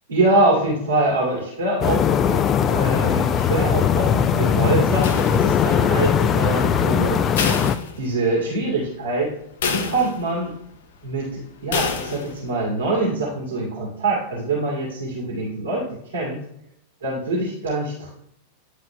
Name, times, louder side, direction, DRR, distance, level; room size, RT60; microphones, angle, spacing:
voice 1, 0.1-7.2 8.0-9.3 9.7-10.5 11.0-16.4 17.0-18.1, right 2 dB, 65° right, -5 dB, 2.4 m, -24 dB
sound 1, 1.8-7.8, left 8 dB, 30° left, 0.3 m, -19 dB
sound 2, 5.0-5.9 7.4-8.5 8.9-9.0 9.6-10.5 11.7-12.5, left 5 dB, 60° left, 0.7 m, -28 dB
10.0 x 4.7 x 2.2 m, 0.74 s
figure-of-eight pair, 90°, 0 cm